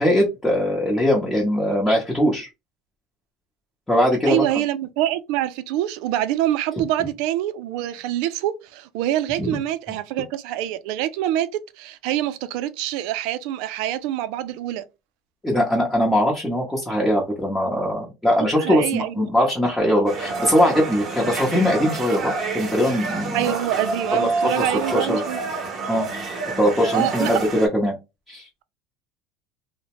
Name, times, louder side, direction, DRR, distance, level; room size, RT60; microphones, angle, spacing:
voice 1, 0.0-2.5 3.9-4.4 6.8-6.9 9.4-9.6 15.4-23.5 24.1-25.2 25.9-26.1 26.6-27.9 28.3-28.5, equal, 10° left, 0.8 m, -21 dB
voice 2, 4.3-11.5 11.8-14.8 18.5-19.3 23.3-25.4 26.9-27.5, right 12 dB, 70° right, 0.4 m, -25 dB
sound 1, 20.1-27.7, right 3 dB, 30° right, 0.9 m, -28 dB
2.8 x 2.1 x 2.9 m
cardioid pair, 135°, 0 cm